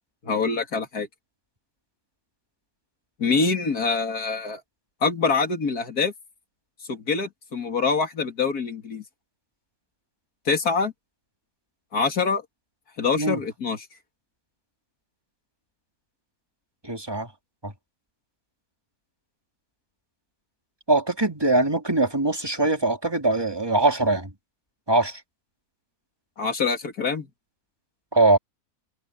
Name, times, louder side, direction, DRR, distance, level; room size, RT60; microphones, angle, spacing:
voice 1, 0.2-1.1 3.2-4.6 5.0-6.1 6.9-9.0 10.5-10.9 11.9-12.4 13.0-13.9 26.4-27.3, left 4 dB, 85° left, 3.1 m, -25 dB
voice 2, 16.8-17.3 17.6-17.7 20.9-24.3 24.9-25.2 28.1-28.4, right 2 dB, 15° right, 2.5 m, -22 dB
omnidirectional pair, 1.6 m